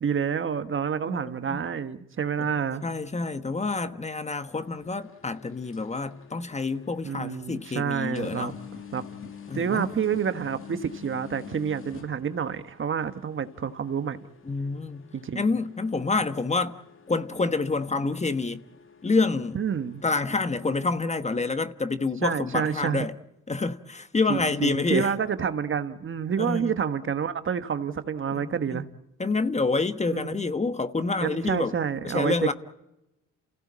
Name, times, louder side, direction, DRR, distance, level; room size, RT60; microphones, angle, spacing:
voice 1, 0.0-2.8 7.0-8.5 8.9-9.0 9.5-14.2 15.1-15.4 19.5-20.0 22.2-23.1 24.3-28.8 30.1-30.4 31.2-32.5, right 7 dB, 40° right, 1.3 m, -28 dB
voice 2, 2.8-8.5 9.5-9.9 14.5-15.1 15.3-16.7 17.1-18.6 19.0-19.6 20.0-23.1 23.5-25.1 26.4-26.8 28.3-28.8 29.2-31.7 32.0-32.5, left 3 dB, 20° left, 1.2 m, -27 dB
sound 1, 4.6-20.9, left 6 dB, 40° left, 2.2 m, -47 dB
28.5 x 16.0 x 8.6 m
supercardioid pair, 70°, 31 cm